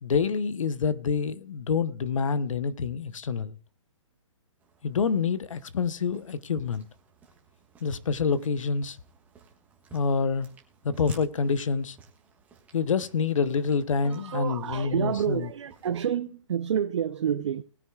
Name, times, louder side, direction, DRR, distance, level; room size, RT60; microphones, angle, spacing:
voice 1, 0.0-3.6 4.8-6.8 7.8-9.0 9.9-10.5 10.8-12.0 12.7-15.5, left 5 dB, 70° left, 0.9 m, -27 dB
sound 1, 4.6-16.1, right 5 dB, 10° right, 1.4 m, -56 dB
voice 2, 14.0-17.6, right 8 dB, 60° right, 0.6 m, -29 dB
19.5 x 9.3 x 2.3 m
hypercardioid pair, 160°, 17 cm